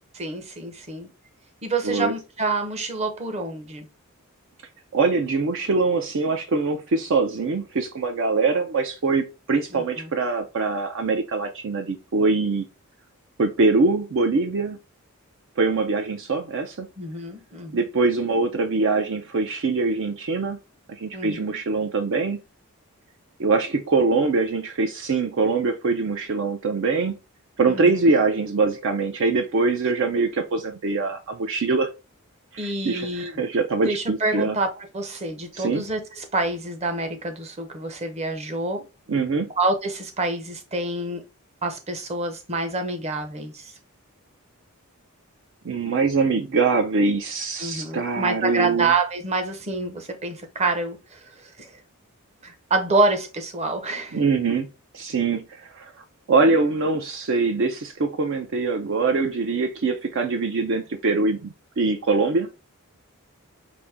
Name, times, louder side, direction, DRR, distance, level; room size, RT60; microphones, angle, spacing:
voice 1, 0.2-1.1 1.6-3.9 9.7-10.1 17.0-17.8 21.1-21.4 27.6-28.0 32.6-33.3 33.8-38.8 39.6-41.2 41.6-43.7 47.6-51.7 52.4-54.2, right 2 dB, 30° right, 0.8 m, -27 dB
voice 2, 4.9-12.7 13.4-14.8 15.6-16.9 17.7-20.6 20.9-22.4 23.4-27.2 27.6-31.9 32.5-34.6 35.5-35.8 39.1-39.5 45.6-48.9 54.1-54.7 54.9-62.5, right 3 dB, 55° right, 0.5 m, -23 dB
5.2 x 2.6 x 3.3 m
head